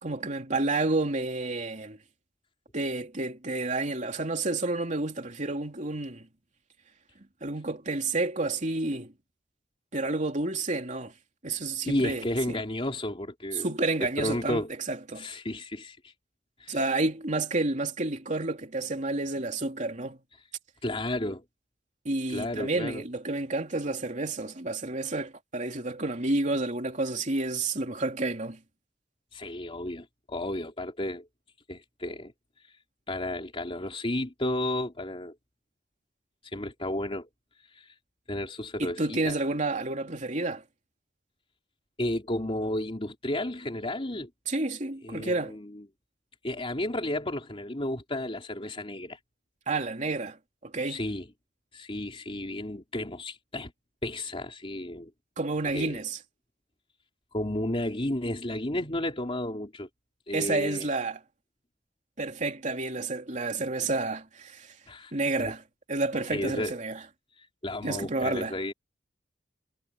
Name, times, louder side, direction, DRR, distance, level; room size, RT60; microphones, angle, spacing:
voice 1, 0.0-2.0 2.7-6.2 7.4-9.1 9.9-11.1 11.4-12.6 13.5-15.3 16.7-20.2 22.0-28.6 38.8-40.6 44.5-45.6 49.7-50.4 50.6-51.0 55.4-56.2 60.3-61.2 62.2-64.7 65.1-65.6 65.9-67.0 67.8-68.5, right 2 dB, 45° right, 3.2 m, -30 dB
voice 2, 11.8-13.7 14.2-14.7 15.1-16.1 16.6-16.8 20.8-21.4 22.3-23.0 29.3-31.3 31.7-32.3 33.1-35.3 36.4-37.3 37.7-37.9 38.3-39.4 42.0-44.3 45.0-45.9 46.4-49.2 50.8-51.2 51.7-53.7 54.0-55.1 55.6-56.0 57.3-59.9 60.3-60.9 64.9-65.1 65.4-65.5 66.3-66.8 67.4-68.7, left 1 dB, 30° left, 3.4 m, -32 dB
head